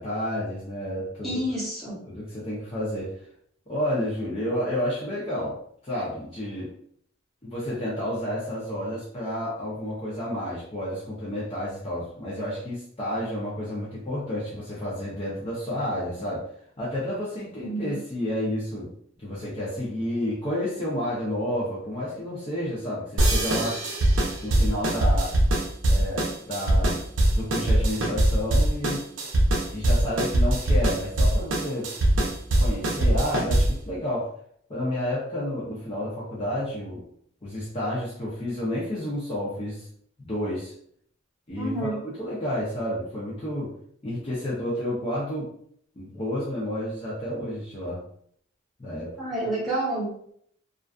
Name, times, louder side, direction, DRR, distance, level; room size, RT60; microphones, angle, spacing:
voice 1, 0.0-1.4 2.1-3.1 3.7-5.5 5.8-6.7 7.4-16.4 16.8-18.9 19.2-23.8 24.4-25.3 25.9-27.0 27.3-29.0 29.7-31.9 32.2-32.3 32.6-34.3 34.7-37.0 37.4-39.9 40.2-40.7 41.5-43.7 44.0-45.5 46.0-48.0 48.8-49.1, left 1 dB, 30° left, -7 dB, 0.6 m, -30 dB
voice 2, 1.2-2.0 17.6-17.9 41.6-41.9 49.2-50.2, right 1 dB, ahead, -9 dB, 1.0 m, -29 dB
sound 1, 23.2-33.8, right 1 dB, 75° right, 0.5 m, -22 dB
2.4 x 2.3 x 2.3 m, 0.66 s
head